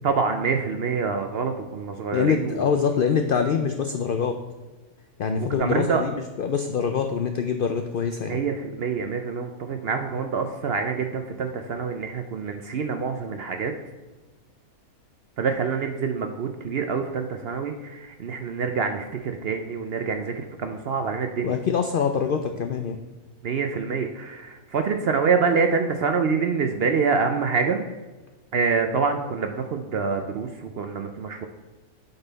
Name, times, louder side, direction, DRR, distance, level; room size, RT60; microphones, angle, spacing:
voice 1, 0.0-2.7 5.4-6.0 8.3-13.7 15.4-21.6 23.4-27.8 28.5-31.5, right 5 dB, 65° right, 6 dB, 0.6 m, -26 dB
voice 2, 2.1-4.4 5.2-8.4 21.4-23.0, left 6 dB, 80° left, 6 dB, 0.4 m, -24 dB
8.0 x 5.5 x 4.0 m, 1.2 s
omnidirectional pair, 1.5 m